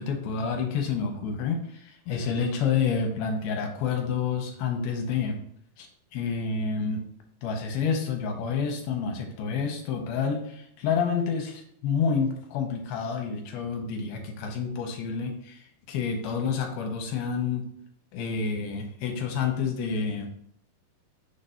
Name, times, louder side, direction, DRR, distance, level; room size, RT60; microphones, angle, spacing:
voice 1, 0.0-5.4 5.8-5.9 6.1-7.0 7.4-17.7 18.1-20.3, left 6 dB, 75° left, 2 dB, 2.4 m, -29 dB
6.5 x 2.7 x 5.5 m, 0.68 s
omnidirectional pair, 4.6 m